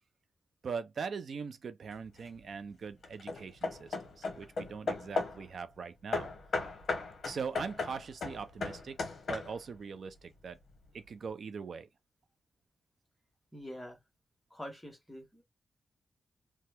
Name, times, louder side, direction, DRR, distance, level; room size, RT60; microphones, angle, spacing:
voice 1, 0.6-6.3 7.2-10.6 10.9-11.9, right 5 dB, 55° right, 0.4 m, -41 dB
Hammer / Wood, 1.9-2.4 3.0-5.5 6.1-9.8, left 3 dB, 55° left, 0.8 m, -37 dB
voice 2, 13.5-14.0 14.5-15.4, equal, 5° left, 1.1 m, -45 dB
2.9 x 2.2 x 3.2 m
wide cardioid pair, 175°, 0 cm